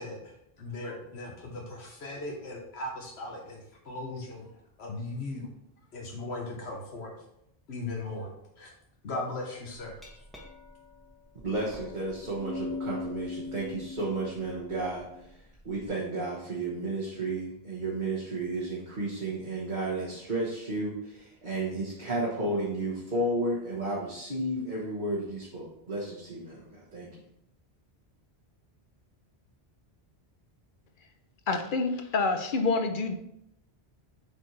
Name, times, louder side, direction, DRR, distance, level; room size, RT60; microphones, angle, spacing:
voice 1, 0.0-4.5 4.8-5.5 5.9-7.1 7.7-8.7 9.0-10.0, left 2 dB, 85° left, 0 dB, 1.4 m, -38 dB
Glass, 10.0-15.9, left 3 dB, ahead, 1.2 m, -41 dB
voice 2, 11.4-15.4 15.6-27.1, right 2 dB, 50° right, -6 dB, 1.4 m, -32 dB
voice 3, 31.5-33.2, left 3 dB, 60° left, 7 dB, 0.8 m, -27 dB
7.4 x 4.4 x 3.2 m, 0.78 s
omnidirectional pair, 1.1 m